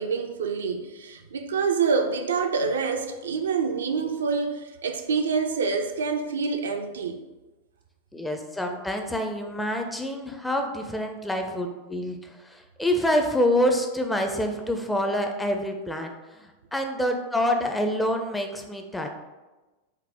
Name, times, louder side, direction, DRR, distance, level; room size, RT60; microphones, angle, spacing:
voice 1, 0.0-7.2, right 5 dB, 65° right, 0.3 m, -26 dB
voice 2, 8.1-16.1 16.4-19.1, left 1 dB, 5° left, 0.4 m, -27 dB
4.2 x 2.0 x 3.3 m
figure-of-eight pair, 90°, 0 cm